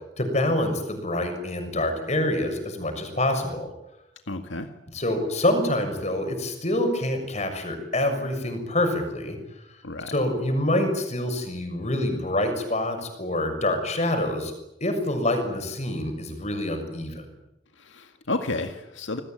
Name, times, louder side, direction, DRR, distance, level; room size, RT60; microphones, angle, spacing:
voice 1, 0.2-3.7 4.9-9.4 10.1-14.5 14.8-17.2, left 1 dB, 35° left, 6 dB, 6.5 m, -26 dB
voice 2, 4.3-4.7 9.8-10.2 17.8-19.2, left 2 dB, 80° left, 6 dB, 2.0 m, -31 dB
28.0 x 21.0 x 9.1 m, 0.86 s
head